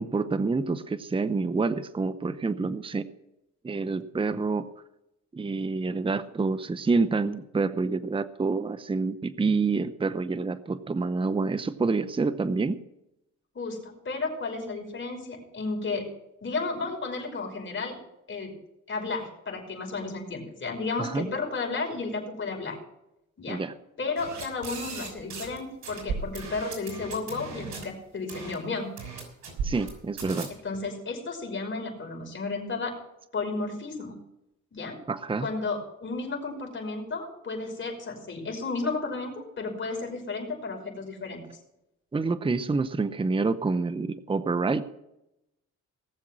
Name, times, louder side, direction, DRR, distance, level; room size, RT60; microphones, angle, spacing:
voice 1, 0.0-3.1 3.6-4.7 5.3-12.8 21.0-21.3 23.5-23.7 29.6-30.5 35.1-35.5 42.1-44.8, right 4 dB, 15° right, 12 dB, 0.8 m, -27 dB
voice 2, 13.5-16.0 16.4-18.0 18.3-18.5 18.9-22.8 23.4-23.6 24.0-28.9 30.6-33.0 33.3-34.1 34.7-35.0 35.4-41.4, left 3 dB, 40° left, 2 dB, 5.7 m, -33 dB
sound 1, 24.2-25.6 25.8-27.8 28.3-28.5 29.0-29.9 30.2-30.4, right 5 dB, 70° right, 6.0 m, -36 dB
19.0 x 7.3 x 6.3 m, 0.86 s
cardioid pair, 90°, 30 cm